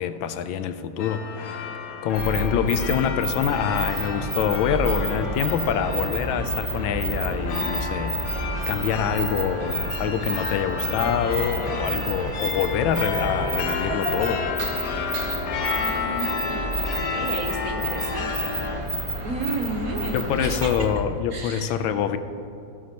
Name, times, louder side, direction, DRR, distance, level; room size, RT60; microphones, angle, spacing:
voice 1, 0.0-1.7 2.0-14.4 20.1-22.2, left 8 dB, 80° left, 11 dB, 1.3 m, -26 dB
sound 1, 1.0-18.8, left 5 dB, 55° left, 1.1 m, -32 dB
sound 2, 2.1-21.0, right 1 dB, 20° right, 1.0 m, -30 dB
voice 2, 15.8-18.9 19.2-20.7 21.3-21.7, right 3 dB, 55° right, 3 dB, 1.2 m, -33 dB
16.0 x 12.5 x 3.0 m, 2.8 s
omnidirectional pair, 2.2 m